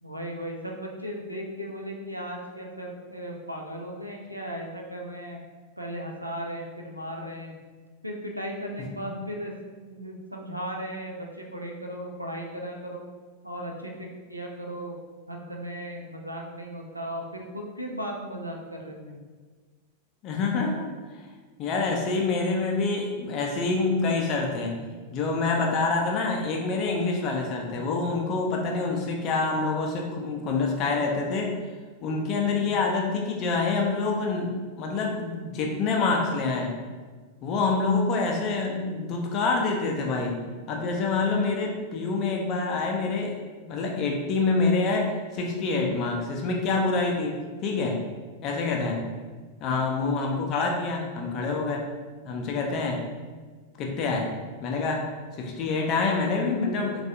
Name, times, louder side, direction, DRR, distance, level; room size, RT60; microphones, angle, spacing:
voice 1, 0.0-5.4 5.8-7.5 8.0-9.5 9.8-13.1 13.4-15.0 15.3-19.2, equal, 90° right, 0 dB, 0.4 m, -36 dB
voice 2, 20.2-20.9 21.6-24.7 25.1-31.5 32.0-36.7 37.4-40.4 40.7-43.4 43.6-48.0 48.4-49.0 49.6-51.9 52.2-53.0 53.8-54.3 54.6-55.1 55.4-57.1, left 3 dB, 35° left, 1 dB, 0.5 m, -26 dB
3.2 x 2.3 x 2.7 m, 1.4 s
figure-of-eight pair, 90°, 0 cm